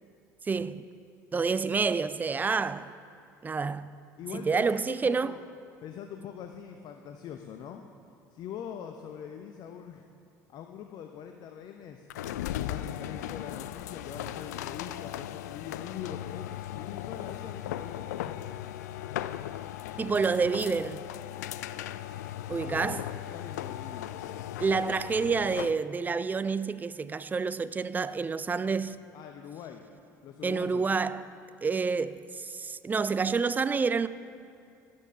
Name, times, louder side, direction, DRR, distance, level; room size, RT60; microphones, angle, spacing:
voice 1, 0.4-0.9 1.3-2.9 3.4-4.0 4.3-5.4 20.0-21.0 22.5-23.0 24.6-29.0 30.4-31.2 31.6-34.1, right 5 dB, 20° right, 0.4 m, -28 dB
voice 2, 4.2-5.4 5.8-7.8 8.3-10.1 10.5-12.1 12.6-18.1 22.7-24.2 29.1-29.8 30.2-30.9, left 8 dB, 45° left, 0.7 m, -43 dB
sound 1, 12.1-25.8, left 12 dB, 65° left, 0.4 m, -37 dB
12.5 x 10.5 x 5.4 m
figure-of-eight pair, 65°, 9 cm